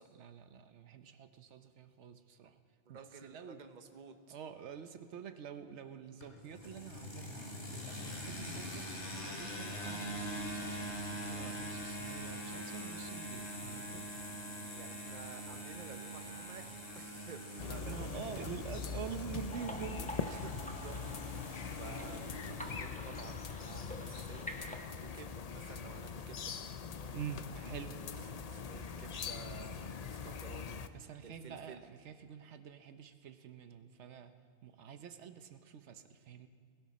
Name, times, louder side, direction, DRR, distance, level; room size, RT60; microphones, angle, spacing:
voice 1, 0.2-2.6 2.9-3.6 4.3-14.1 17.6-20.1 27.1-28.0 30.9-34.4 34.6-36.5, right 8 dB, 80° right, 9 dB, 1.0 m, -47 dB
voice 2, 2.9-4.3 14.7-18.6 20.3-21.0 21.3-26.5 27.5-28.1 28.5-30.8 31.2-31.8, right 6 dB, 45° right, 7 dB, 1.0 m, -53 dB
sound 1, 6.2-23.0, equal, 80° left, 3.0 m, -44 dB
sound 2, 17.6-30.9, left 6 dB, 45° left, 0.5 m, -42 dB
sound 3, 19.5-24.8, equal, 5° left, 1.0 m, -47 dB
20.5 x 17.0 x 4.2 m, 2.2 s
omnidirectional pair, 1.2 m